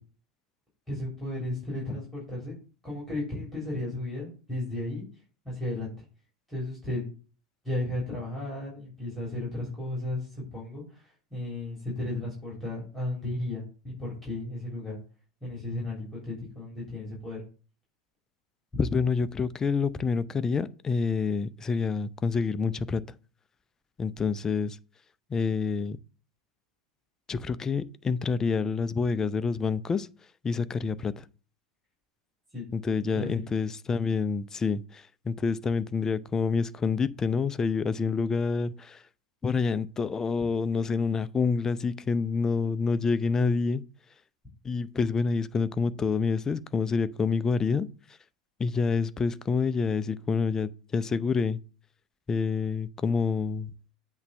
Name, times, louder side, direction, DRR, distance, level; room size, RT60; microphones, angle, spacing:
voice 1, 0.9-2.6 2.8-5.0 5.4-5.9 6.5-7.0 7.6-15.0 15.4-17.4 18.7-18.8 32.5-32.6 33.1-33.4, left 1 dB, ahead, 3.4 m, -34 dB
voice 2, 18.8-23.0 24.0-24.8 25.3-26.0 27.3-30.1 30.4-31.2 32.7-39.0 39.4-43.8 44.6-47.9 48.6-51.6 52.3-53.7, left 5 dB, 20° left, 0.4 m, -27 dB
8.1 x 3.2 x 6.3 m
figure-of-eight pair, 80°, 3 cm